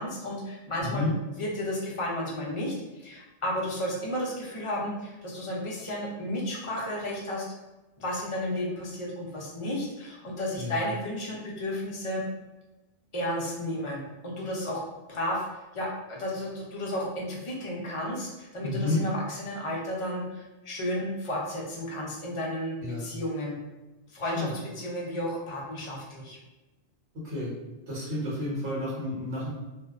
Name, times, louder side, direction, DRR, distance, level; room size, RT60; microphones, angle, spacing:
voice 1, 0.0-7.4 8.0-12.2 13.1-14.8 15.1-15.5 15.7-23.5 24.1-26.4, left 1 dB, 50° left, -3 dB, 0.4 m, -33 dB
voice 2, 0.8-1.1 10.5-10.8 18.6-19.0 22.8-23.0 24.2-24.5 27.1-27.5 27.9-29.5, left 2 dB, 85° right, -8 dB, 1.3 m, -31 dB
2.5 x 2.1 x 2.3 m, 1.1 s
omnidirectional pair, 1.1 m